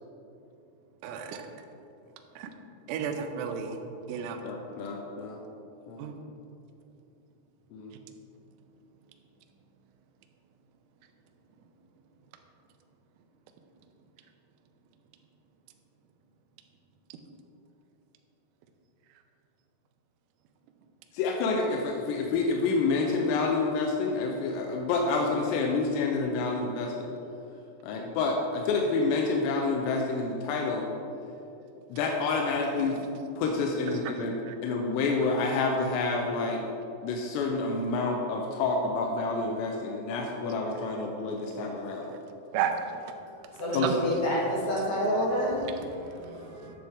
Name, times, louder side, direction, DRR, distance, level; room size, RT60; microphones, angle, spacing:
voice 1, 1.0-1.5 2.4-2.5 2.9-3.8 4.1-4.4 6.0-6.1 34.5-34.6 42.5-43.1 43.8-43.9, right 7 dB, 90° right, 5 dB, 2.1 m, -32 dB
voice 2, 4.4-5.4 5.9-6.0 7.7-8.0 21.1-27.1 27.8-30.9 31.9-33.0 33.4-34.4 34.6-36.6 37.0-42.1 43.7-43.9, left 3 dB, 90° left, 1 dB, 2.8 m, -28 dB
voice 3, 43.6-46.7, equal, 55° left, -6 dB, 1.9 m, -29 dB
9.8 x 7.0 x 3.6 m, 2.8 s
omnidirectional pair, 4.8 m